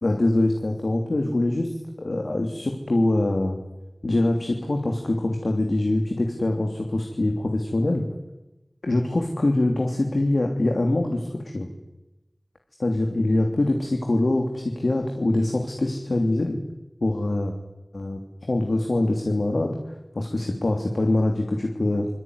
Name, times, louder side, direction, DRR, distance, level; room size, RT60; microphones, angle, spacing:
voice 1, 0.0-3.6 4.0-8.0 8.8-11.7 12.8-16.6 17.0-17.5 17.9-18.2 18.5-19.8 20.1-22.1, left 2 dB, 80° left, 3 dB, 3.1 m, -24 dB
27.0 x 22.0 x 9.7 m, 1.0 s
wide cardioid pair, 40°, 0 cm